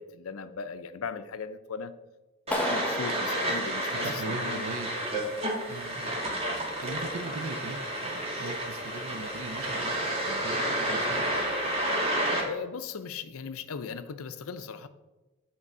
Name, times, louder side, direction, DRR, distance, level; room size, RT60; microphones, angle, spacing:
voice 1, 0.0-1.9 2.5-4.6 5.2-5.4 12.4-14.9, left 5 dB, 80° left, 12 dB, 0.5 m, -38 dB
Clapping, 2.5-4.6, left 1 dB, 5° left, 0.8 m, -34 dB
sound 1, 2.5-12.4, right 1 dB, 30° right, 1.8 m, -30 dB
voice 2, 3.9-4.9 5.7-6.1 6.8-9.9 10.3-11.2, right 3 dB, 80° right, 10 dB, 0.7 m, -39 dB
8.8 x 4.6 x 5.4 m, 1.1 s
head